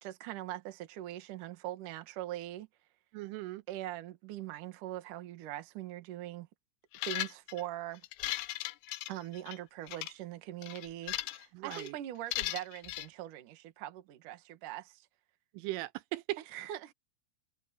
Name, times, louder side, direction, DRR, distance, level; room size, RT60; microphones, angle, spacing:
voice 1, 0.0-2.7 3.7-6.5 7.0-8.0 9.1-15.1 16.5-16.9, right 14 dB, 60° right, 2.4 m, -42 dB
voice 2, 3.1-3.6 11.5-12.0 15.5-16.4, right 18 dB, 90° right, 3.3 m, -38 dB
sound 1, 6.9-7.6 8.0-9.6 9.9-10.1 10.6-11.4 11.7-11.9 12.3-13.1, left 17 dB, 85° left, 2.4 m, -37 dB
omnidirectional pair, 5.5 m